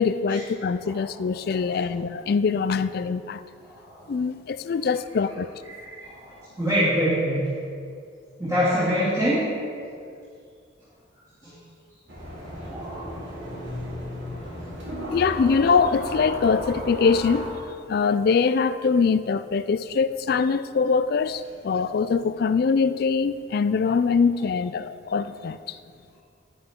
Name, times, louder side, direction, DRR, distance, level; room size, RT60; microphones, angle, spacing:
voice 1, 0.0-3.4 4.1-5.5 15.1-17.5 17.9-25.8, left 5 dB, 50° left, 13 dB, 0.3 m, -23 dB
voice 2, 1.5-1.8 3.6-4.1 5.6-7.5 8.4-9.5 11.4-11.5 12.5-13.3 14.6-15.2, equal, 20° right, -13 dB, 2.6 m, -26 dB
sound 1, 12.1-17.5, equal, 65° right, 2.6 m, -35 dB
11.0 x 10.5 x 3.7 m, 2.3 s
head